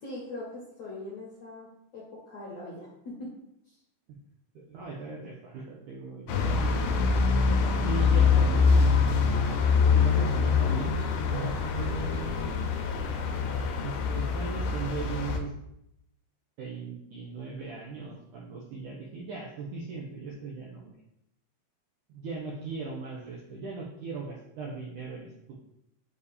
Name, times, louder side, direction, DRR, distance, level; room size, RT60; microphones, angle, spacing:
voice 1, 0.0-1.7 1.9-3.3 3.7-3.8, left 2 dB, 60° left, -5 dB, 1.8 m, -41 dB
voice 2, 4.6-7.1 7.8-9.1 9.8-11.0 11.3-12.6 13.8-15.5 16.6-20.9 22.1-25.6, right 4 dB, 80° right, -2 dB, 1.8 m, -38 dB
sound 1, 6.3-15.4, left 5 dB, 80° left, 2.3 m, -24 dB
7.1 x 2.8 x 5.0 m, 0.79 s
omnidirectional pair, 4.6 m